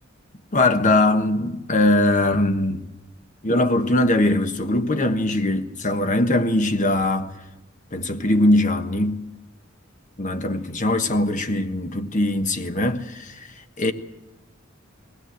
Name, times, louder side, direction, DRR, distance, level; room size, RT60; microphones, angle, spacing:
voice 1, 0.5-2.8 3.4-7.3 7.9-9.2 10.2-13.4 13.8-13.9, left 1 dB, 40° left, 1.2 m, -21 dB
22.0 x 16.5 x 7.9 m
head